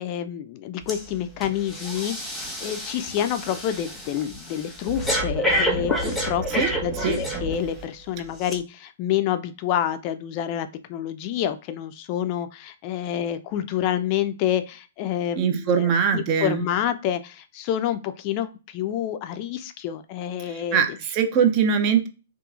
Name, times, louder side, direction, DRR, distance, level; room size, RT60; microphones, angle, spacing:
voice 1, 0.0-20.8, left 10 dB, 40° left, 10 dB, 0.3 m, -28 dB
Breathing, 0.9-1.1 1.4-7.9 8.4-8.5, equal, 5° left, 0.9 m, -29 dB
voice 2, 15.4-16.6 20.5-22.1, right 7 dB, 35° right, 6 dB, 0.5 m, -22 dB
2.9 x 2.4 x 2.3 m, 0.31 s
hypercardioid pair, 125°, 0 cm